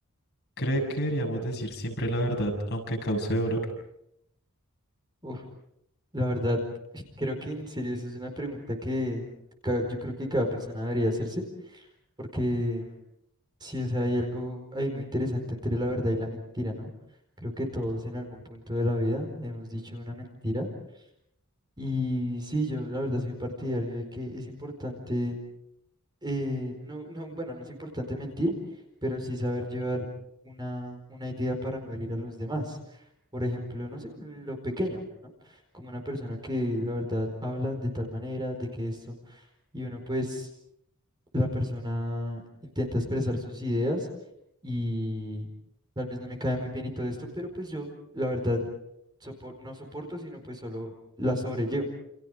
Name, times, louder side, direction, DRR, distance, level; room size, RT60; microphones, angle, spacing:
voice 1, 0.6-3.6, right 1 dB, 50° left, 1 dB, 7.1 m, -28 dB
voice 2, 6.1-6.6 6.9-9.3 9.6-11.8 12.2-12.9 13.6-16.9 17.4-20.7 21.8-25.4 26.2-28.5 29.0-30.1 30.4-32.8 33.3-39.4 39.7-40.5 41.3-42.4 42.7-44.1 44.6-45.5 46.0-48.6 49.2-50.9 51.2-51.8, left 1 dB, 20° right, 3 dB, 4.7 m, -31 dB
29.5 x 29.0 x 5.1 m, 0.78 s
head